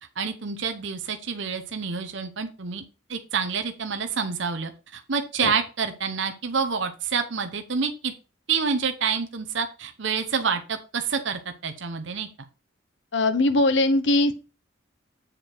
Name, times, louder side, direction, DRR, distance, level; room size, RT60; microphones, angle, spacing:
voice 1, 0.2-2.8 3.1-8.1 8.5-12.3, right 5 dB, 65° right, 7 dB, 0.8 m, -28 dB
voice 2, 13.1-14.3, left 2 dB, 60° left, 11 dB, 0.9 m, -20 dB
7.6 x 5.0 x 4.4 m, 0.32 s
head